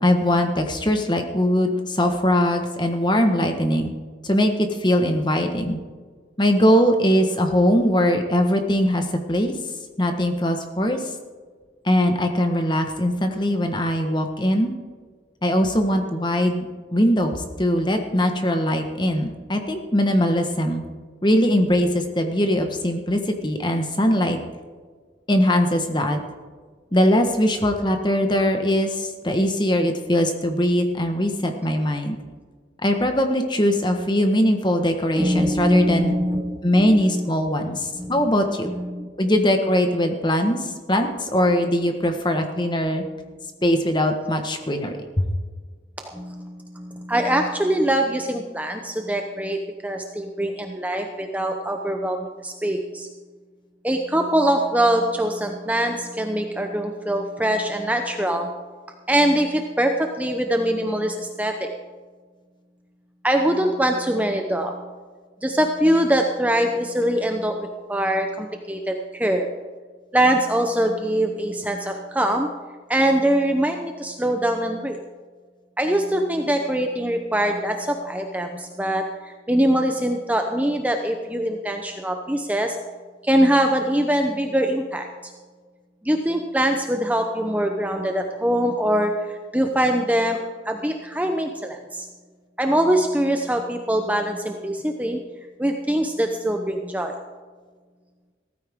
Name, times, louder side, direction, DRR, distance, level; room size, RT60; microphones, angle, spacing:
voice 1, 0.0-3.9 4.2-5.8 6.4-9.5 10.0-11.0 11.8-14.7 15.4-16.6 16.9-20.8 21.2-24.4 25.3-26.2 26.9-32.2 32.8-36.1 36.6-38.7 39.2-43.0 43.6-45.3, equal, 25° left, 5 dB, 1.3 m, -21 dB
voice 2, 35.1-37.3 38.0-38.3 38.6-39.4 41.4-42.1 46.0-49.6 49.8-53.1 53.8-58.5 59.1-61.7 63.2-64.8 65.4-69.5 70.1-72.5 72.9-75.0 75.8-82.8 83.2-85.3 86.0-90.4 90.7-92.1 92.6-95.2 95.6-97.2, right 1 dB, 10° right, 4 dB, 0.7 m, -23 dB
16.0 x 14.0 x 3.7 m, 1.5 s
head